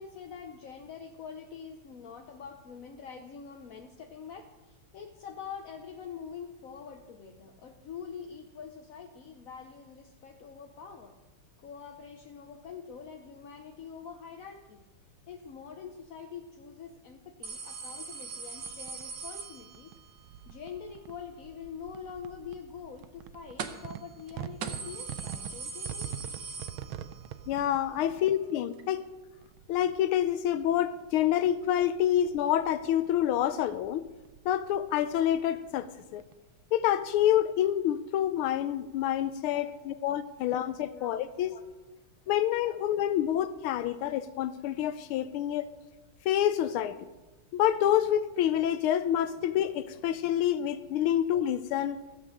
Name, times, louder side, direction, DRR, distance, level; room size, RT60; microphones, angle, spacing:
voice 1, 0.0-11.1 11.6-14.8 15.3-19.9 20.5-26.2 28.0-28.3 32.1-32.2 39.5-40.0 40.9-41.1 41.5-41.6, left 6 dB, 55° left, 1.0 m, -45 dB
sound 1, 17.4-20.1 23.6-24.0 24.3-24.4 24.6-27.3 27.7-27.8 28.8-28.9, right 5 dB, 60° right, 1.4 m, -40 dB
sound 2, 18.5-36.7, right 10 dB, 75° right, 1.4 m, -46 dB
voice 2, 27.5-29.0 29.7-34.0 34.4-36.2 36.7-41.5 42.3-45.7 46.2-46.9 47.5-52.0, left 11 dB, 85° left, 1.5 m, -27 dB
15.0 x 8.2 x 6.5 m
omnidirectional pair, 2.3 m